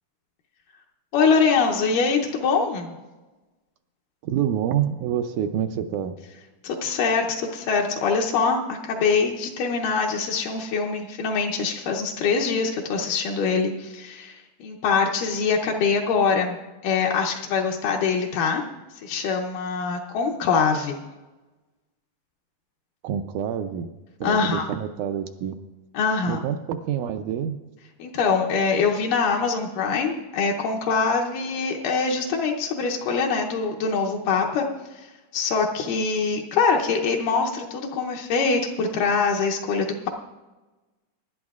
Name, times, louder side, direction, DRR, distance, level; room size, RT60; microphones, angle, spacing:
voice 1, 1.1-2.9 6.6-16.6 16.8-18.6 19.0-21.0 24.2-24.7 25.9-26.4 28.0-40.1, left 5 dB, 80° left, 0 dB, 2.4 m, -24 dB
voice 2, 4.2-6.2 23.0-23.9 24.2-25.6 26.3-27.6, right 9 dB, 80° right, 8 dB, 1.9 m, -27 dB
24.5 x 11.5 x 2.4 m, 1.1 s
omnidirectional pair, 3.8 m